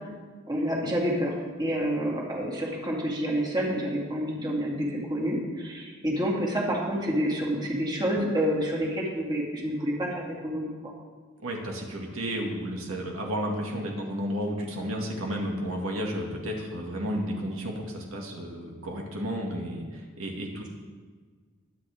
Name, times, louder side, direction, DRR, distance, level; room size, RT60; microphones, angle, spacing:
voice 1, 0.5-10.9, equal, 20° right, -3 dB, 2.4 m, -28 dB
voice 2, 11.4-20.7, equal, 80° right, 0 dB, 2.2 m, -32 dB
21.5 x 9.5 x 3.6 m, 1.5 s
head